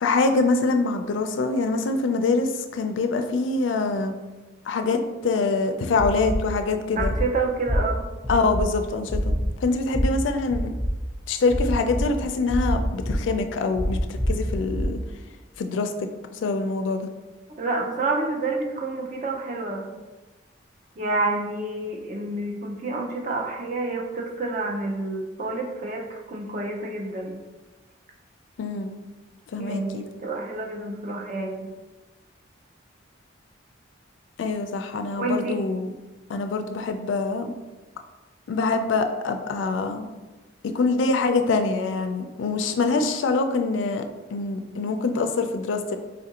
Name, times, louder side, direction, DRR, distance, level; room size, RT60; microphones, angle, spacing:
voice 1, 0.0-4.1 4.7-7.1 8.3-10.7 11.3-15.0 15.6-15.9 16.3-17.1 28.6-29.0 29.5-30.0 34.4-35.9 36.3-37.5 38.5-40.1 40.7-44.0 44.3-46.0, left 3 dB, 75° left, 6 dB, 0.3 m, -24 dB
sound 1, 6.0-6.4 7.0-7.2 7.7-7.8 8.2-8.6 9.1-9.5 9.9-10.0 10.5-10.9 11.5-12.0 12.5-13.1 13.8-14.8, equal, ahead, 0.8 m, -26 dB
voice 2, 7.0-8.1 17.6-19.9 21.0-27.4 29.6-31.7 35.2-35.6, right 2 dB, 40° right, 0 dB, 0.5 m, -28 dB
4.4 x 2.4 x 2.8 m, 1.2 s
head